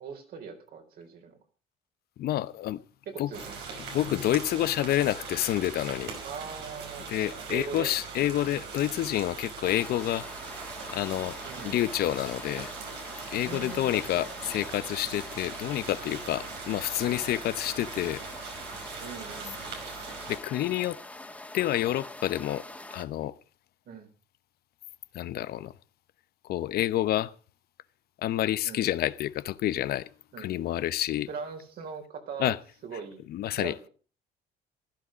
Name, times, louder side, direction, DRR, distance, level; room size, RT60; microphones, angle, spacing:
voice 1, 0.0-1.4 3.1-3.6 6.2-7.1 7.5-7.9 11.4-11.8 13.4-14.4 16.7-16.8 19.0-19.8 23.9-24.1 28.6-28.9 30.3-30.7 31.3-32.6 32.8-33.3 33.5-33.9, right 6 dB, 65° right, 4.2 m, -40 dB
voice 2, 2.2-2.8 3.2-3.3 3.9-6.1 7.1-10.3 10.9-11.4 11.6-12.7 13.3-18.2 20.3-21.0 21.5-22.6 22.9-23.3 25.1-25.7 26.5-27.3 28.2-30.1 30.4-31.3 32.4-32.6 33.3-33.7, left 13 dB, 70° left, 0.9 m, -28 dB
sound 1, 3.3-20.4, right 5 dB, 90° right, 5.3 m, -41 dB
sound 2, 9.6-23.0, left 2 dB, 10° left, 2.0 m, -44 dB
15.0 x 12.5 x 5.1 m
cardioid pair, 110°, 17 cm